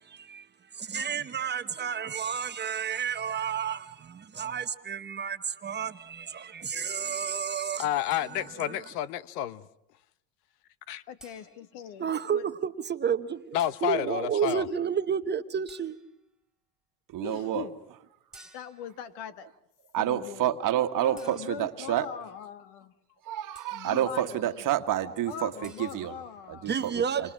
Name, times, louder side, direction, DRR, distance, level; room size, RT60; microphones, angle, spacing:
voice 1, 0.0-7.9 8.6-8.8 12.0-16.0 26.7-27.3, right 7 dB, 20° right, 0.9 m, -31 dB
voice 2, 7.8-9.7 10.9-11.0 13.5-14.7, left 11 dB, 75° left, 1.1 m, -30 dB
sound 1, 8.1-8.8 11.2-11.8 13.6-14.0 15.7-16.2 18.3-19.0 21.2-21.9 23.5-24.0 25.6-25.9, right 2 dB, ahead, 3.5 m, -55 dB
voice 3, 11.1-12.5 14.4-14.8 17.2-17.8 18.5-19.5 20.0-20.6 21.0-22.9 23.7-24.7 25.3-26.7, left 9 dB, 60° left, 1.8 m, -41 dB
voice 4, 17.1-17.6 19.9-22.1 23.2-26.2 26.5-27.3, right 12 dB, 40° right, 1.6 m, -29 dB
29.0 x 25.0 x 6.3 m
supercardioid pair, 110°, 48 cm